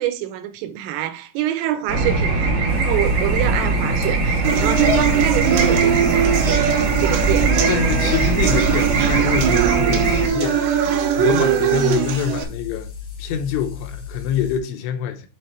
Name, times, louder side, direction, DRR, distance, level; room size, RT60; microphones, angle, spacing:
voice 1, 0.0-6.7 7.0-7.6, right 12 dB, 85° right, 3.5 m, -26 dB
sound 1, 1.9-10.3, right 3 dB, 55° right, 1.9 m, -21 dB
sound 2, 2.7-14.6, left 6 dB, 65° left, 1.8 m, -35 dB
sound 3, 4.4-12.4, right 8 dB, 70° right, 2.9 m, -20 dB
voice 2, 7.7-12.9 13.2-15.3, left 8 dB, 80° left, 3.2 m, -25 dB
8.1 x 3.5 x 4.3 m
omnidirectional pair, 5.8 m